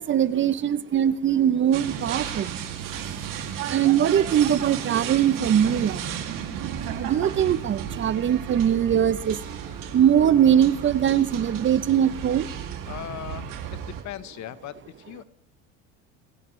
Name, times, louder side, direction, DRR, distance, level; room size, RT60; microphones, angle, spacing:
voice 1, 0.0-12.8, right 9 dB, 35° right, 15 dB, 0.6 m, -22 dB
sound 1, 0.9-13.3, right 10 dB, 85° right, 4.2 m, -52 dB
sound 2, 1.7-14.0, right 8 dB, 65° right, 2.4 m, -34 dB
voice 2, 12.9-15.2, left 12 dB, 50° left, 14 dB, 1.0 m, -39 dB
26.5 x 15.5 x 3.2 m, 0.78 s
supercardioid pair, 105°, 36 cm